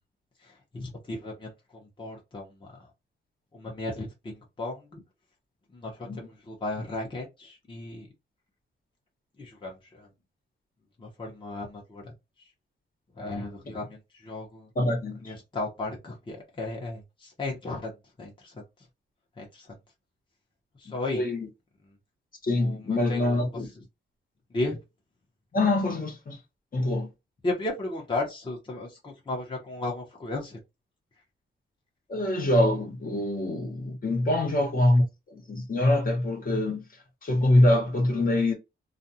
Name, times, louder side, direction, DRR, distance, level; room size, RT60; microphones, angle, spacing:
voice 1, 0.4-2.7 3.5-5.0 5.7-8.1 9.4-10.1 11.0-12.1 13.2-14.7 15.2-17.9 18.2-18.6 19.4-19.7 20.8-21.2 22.6-23.4 24.5-24.8 27.4-30.6, left 2 dB, 25° left, 0.9 m, -35 dB
voice 2, 14.7-15.3 20.9-21.5 22.5-23.7 25.5-26.4 26.7-27.1 32.1-36.8 37.2-38.5, left 1 dB, 45° left, 1.1 m, -24 dB
2.5 x 2.3 x 2.7 m
wide cardioid pair, 110°, 20 cm